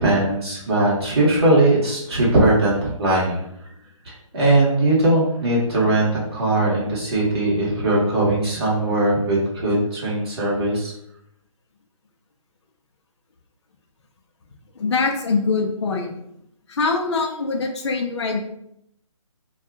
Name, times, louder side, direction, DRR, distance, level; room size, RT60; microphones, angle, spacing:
voice 1, 0.0-3.5 4.0-10.9, right 1 dB, 45° right, -6 dB, 1.3 m, -20 dB
voice 2, 14.8-16.1 16.7-18.4, left 4 dB, 50° left, 1 dB, 0.5 m, -23 dB
2.8 x 2.3 x 3.5 m, 0.77 s
hypercardioid pair, 170°, 18 cm